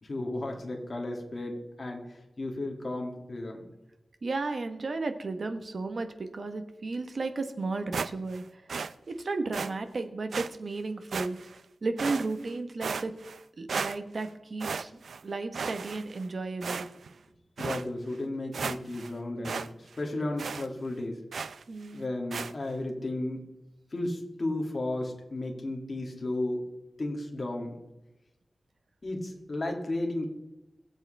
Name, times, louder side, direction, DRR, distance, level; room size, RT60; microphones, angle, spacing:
voice 1, 0.0-3.7 17.6-21.2 21.9-23.4 23.9-26.7 27.0-27.8 29.0-30.3, left 2 dB, 40° left, 1 dB, 2.5 m, -34 dB
voice 2, 4.2-8.7 9.1-11.4 11.8-13.1 13.6-14.9 15.2-16.9 21.7-22.0, right 3 dB, 55° right, 8 dB, 1.2 m, -34 dB
sound 1, 7.9-8.4 8.7-8.9 9.5-9.7 10.3-10.5 11.1-11.6 12.0-12.5 12.8-13.4 13.7-14.3 14.6-15.2 15.5-16.2 16.6-17.1 17.6-17.8 18.2-18.3 18.5-19.1 19.4-19.7 19.9-20.0 20.4-20.7 21.3-21.6 22.3-22.5, right 5 dB, 90° right, 0.5 m, -34 dB
21.5 x 7.9 x 3.4 m, 0.95 s
wide cardioid pair, 120°, 0 cm